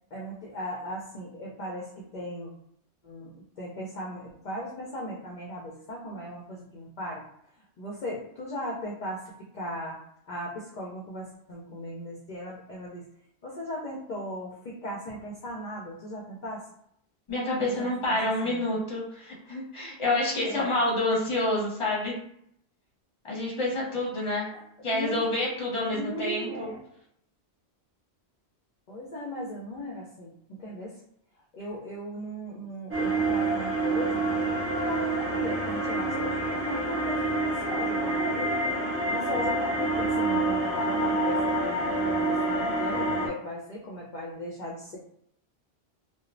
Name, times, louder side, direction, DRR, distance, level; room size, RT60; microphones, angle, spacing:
voice 1, 0.1-2.5 3.0-7.3 7.6-10.0 10.3-13.1 13.4-16.6 17.7-18.7 20.4-20.7 24.5-25.2 25.8-26.8 28.9-31.0 31.5-38.6 39.1-41.8 42.1-45.0, equal, 55° left, -3 dB, 0.5 m, -37 dB
voice 2, 17.3-22.1 23.2-24.5 24.8-26.7, left 1 dB, 30° left, -5 dB, 0.8 m, -28 dB
sound 1, 32.9-43.3, right 2 dB, 20° right, 0.4 m, -27 dB
3.0 x 2.0 x 2.5 m, 0.70 s
omnidirectional pair, 1.1 m